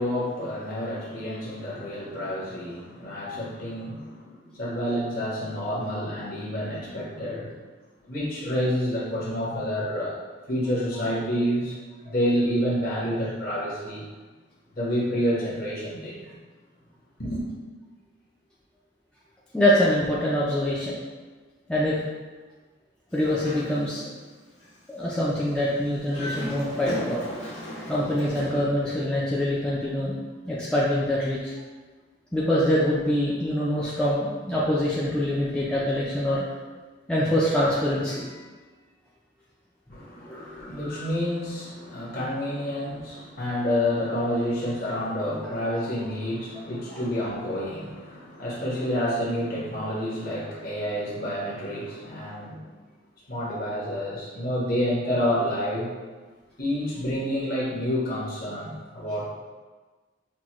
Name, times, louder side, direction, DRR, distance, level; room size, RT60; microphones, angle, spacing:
voice 1, 0.0-7.5 8.0-10.2 10.5-14.0 14.7-16.4 17.2-17.5 39.9-52.6 53.3-55.9 56.6-59.3, equal, 45° left, -7 dB, 1.2 m, -29 dB
voice 2, 19.5-20.9 21.7-22.0 23.1-24.0 24.9-27.2 27.9-30.2 30.5-31.5 32.3-36.5 37.1-38.4 40.3-40.6, left 1 dB, 5° left, -7 dB, 0.4 m, -24 dB
Dog, 23.1-24.2 24.6-24.7 26.0-28.7, equal, 85° left, 1.4 m, -36 dB
5.9 x 2.2 x 3.0 m, 1.3 s
head